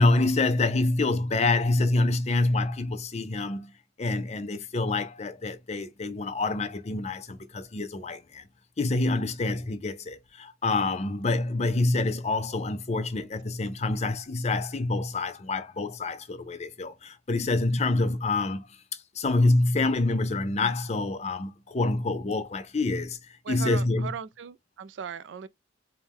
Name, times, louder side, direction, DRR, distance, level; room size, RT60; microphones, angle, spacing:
voice 1, 0.0-3.7 4.0-8.4 8.8-18.7 19.2-23.2 23.5-24.1, left 2 dB, 40° left, 0.6 m, -26 dB
voice 2, 23.4-25.5, right 6 dB, 85° right, 0.4 m, -38 dB
4.4 x 2.2 x 3.5 m
head